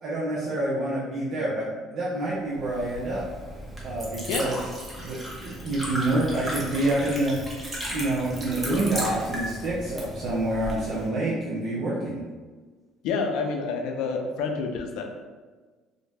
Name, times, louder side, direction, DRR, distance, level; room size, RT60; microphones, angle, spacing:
voice 1, 0.0-3.2 3.8-4.6 4.9-7.6 7.9-12.2, right 1 dB, 60° right, -7 dB, 0.6 m, -27 dB
Liquid, 2.5-11.1, equal, 10° right, 0.7 m, -35 dB
voice 2, 13.0-15.0, left 4 dB, 80° left, 3 dB, 0.4 m, -28 dB
2.5 x 2.1 x 3.3 m, 1.3 s
cardioid pair, 120°, 0 cm